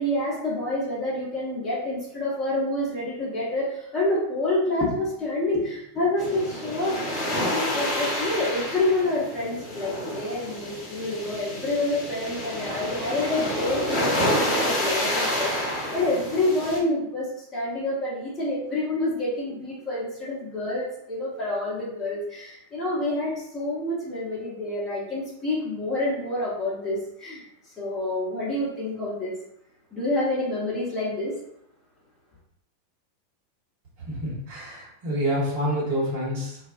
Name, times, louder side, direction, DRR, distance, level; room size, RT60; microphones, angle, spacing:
voice 1, 0.0-7.2 7.5-27.4 27.8-29.3 29.9-31.3, left 2 dB, 20° left, -7 dB, 0.8 m, -28 dB
sound 1, 6.2-16.8, left 1 dB, 40° left, 1.1 m, -29 dB
voice 2, 34.1-36.7, equal, 55° right, -5 dB, 1.1 m, -28 dB
2.3 x 2.2 x 2.5 m, 0.76 s
figure-of-eight pair, 90°, 0 cm